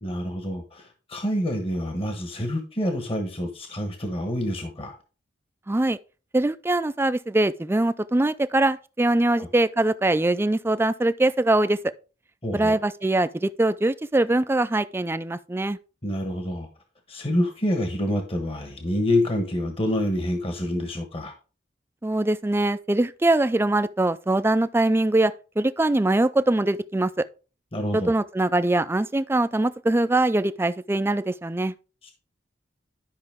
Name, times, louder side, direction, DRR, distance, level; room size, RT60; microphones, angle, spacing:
voice 1, 0.0-5.0 9.4-9.5 12.4-12.8 16.0-16.7 17.1-21.3 27.7-28.1 32.0-32.1, left 1 dB, 35° left, 1.3 m, -27 dB
voice 2, 5.7-6.0 6.3-11.8 12.5-15.8 22.0-27.1 27.9-31.7, right 2 dB, 15° right, 0.4 m, -22 dB
12.0 x 5.6 x 3.5 m
head